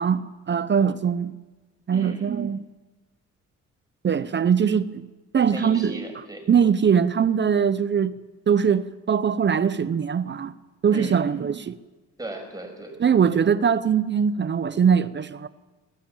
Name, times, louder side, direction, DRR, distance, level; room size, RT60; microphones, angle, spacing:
voice 1, 0.0-1.3 1.9-2.7 4.0-5.1 5.3-6.0 6.5-8.1 8.5-10.5 10.8-11.8 13.0-15.5, right 7 dB, 35° right, 0.8 m, -21 dB
voice 2, 1.9-2.3 5.5-6.5 10.9-11.2 12.2-13.1, right 1 dB, 10° right, 6.6 m, -36 dB
19.0 x 16.0 x 8.8 m
cardioid pair, 90°, 30 cm